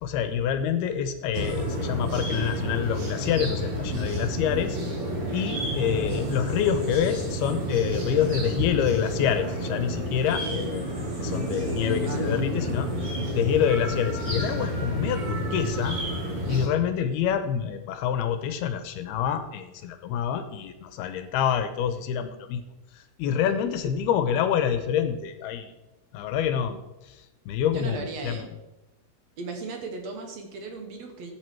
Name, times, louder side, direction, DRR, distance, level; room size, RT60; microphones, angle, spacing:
voice 1, 0.0-4.8 5.3-10.9 11.2-12.9 13.3-16.0 16.5-22.6 22.9-25.7 26.1-26.8 27.0-28.5, left 8 dB, 75° left, 9 dB, 2.5 m, -27 dB
sound 1, 1.3-16.7, equal, 35° right, 3.0 m, -30 dB
voice 2, 12.1-12.6 23.5-23.6 27.7-28.5 29.4-31.3, right 4 dB, 65° right, 3 dB, 1.6 m, -36 dB
14.5 x 8.8 x 4.6 m, 1.0 s
omnidirectional pair, 5.1 m